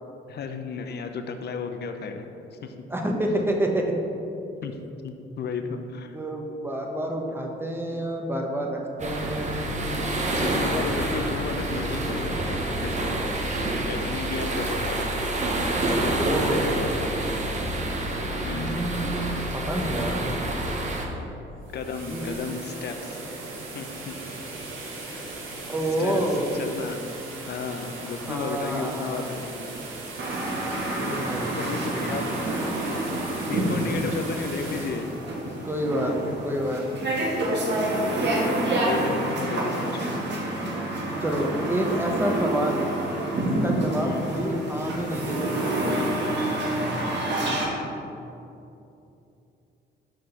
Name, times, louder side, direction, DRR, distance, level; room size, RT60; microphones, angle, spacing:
voice 1, 0.3-2.7 4.6-4.8 5.0-6.2 10.0-13.2 13.8-15.1 15.9-17.1 18.4-18.8 21.7-23.2 23.7-24.1 25.1-25.2 26.0-26.3 26.5-27.0 27.5-29.8 30.9-31.3 31.6-32.2 33.5-35.1 35.4-35.7 38.8-40.2 44.0-44.2, left 5 dB, 55° left, 6 dB, 0.7 m, -33 dB
voice 2, 2.9-4.0 5.7-5.8 6.1-9.8 16.1-16.7 18.5-20.2 22.1-22.3 25.7-26.6 28.0-29.3 31.0-31.5 31.9-32.2 35.6-37.1 41.2-42.8 43.4-45.7, right 1 dB, 10° right, 1 dB, 1.0 m, -28 dB
sound 1, 9.0-21.0, right 1 dB, 35° right, 1.1 m, -28 dB
sound 2, 21.5-36.4, right 2 dB, 90° right, 1.3 m, -38 dB
sound 3, 30.2-47.6, right 1 dB, 60° right, 1.4 m, -28 dB
6.0 x 5.0 x 5.6 m, 2.8 s
cardioid pair, 90°, 20 cm